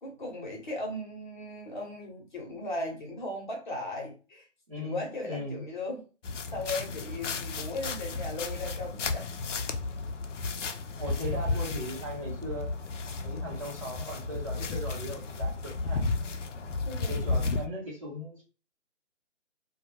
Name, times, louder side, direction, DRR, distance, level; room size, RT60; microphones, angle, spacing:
voice 1, 0.0-4.5 4.8-6.0 6.5-9.4 16.9-17.3, left 1 dB, 40° left, 0.8 m, -37 dB
voice 2, 4.7-5.6 11.0-12.7 13.2-16.0 17.0-18.4, equal, 30° right, 0.8 m, -38 dB
sound 1, 6.2-17.7, left 3 dB, 75° left, 0.5 m, -33 dB
2.2 x 2.2 x 2.9 m
figure-of-eight pair, 165°, 37 cm